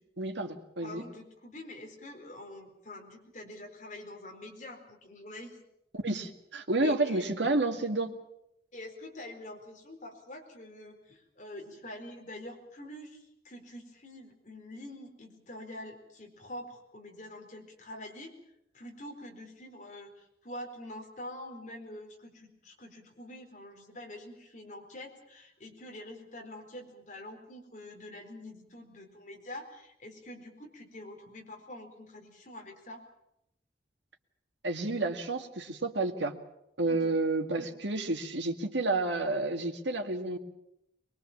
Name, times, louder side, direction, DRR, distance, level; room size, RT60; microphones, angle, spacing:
voice 1, 0.2-1.0 5.9-8.1 34.6-36.3 36.8-40.4, right 2 dB, 85° right, 5 dB, 2.1 m, -30 dB
voice 2, 0.8-5.6 6.8-7.2 8.7-18.3 18.7-33.0 36.9-37.2, left 1 dB, 45° left, 2 dB, 4.4 m, -46 dB
22.5 x 22.5 x 7.4 m, 0.81 s
head